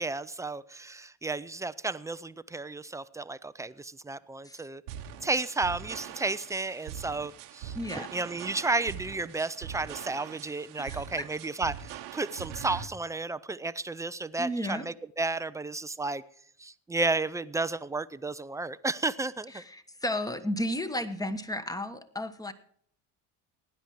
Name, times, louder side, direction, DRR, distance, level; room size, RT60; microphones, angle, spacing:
voice 1, 0.0-4.8 5.2-7.8 8.1-16.2 16.6-19.6, right 3 dB, 5° right, 15 dB, 0.5 m, -32 dB
sound 1, 4.9-12.9, right 9 dB, 85° right, 1.2 m, -42 dB
voice 2, 7.7-8.1 10.8-11.3 14.4-14.9 19.5-22.5, left 1 dB, 10° left, 11 dB, 1.3 m, -33 dB
16.0 x 10.0 x 4.7 m, 0.63 s
supercardioid pair, 75°, 44 cm